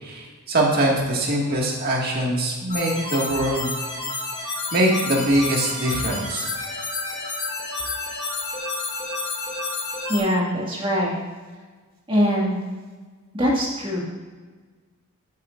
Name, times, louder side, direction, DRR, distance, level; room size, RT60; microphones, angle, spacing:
voice 1, 0.0-3.7 4.7-6.5, right 1 dB, 45° right, -2 dB, 1.8 m, -22 dB
sound 1, 2.7-10.2, left 3 dB, 30° left, 2.4 m, -30 dB
voice 2, 10.1-11.2 12.1-12.6 13.3-14.0, equal, 25° right, -3 dB, 1.9 m, -22 dB
13.5 x 8.2 x 2.5 m, 1.4 s
head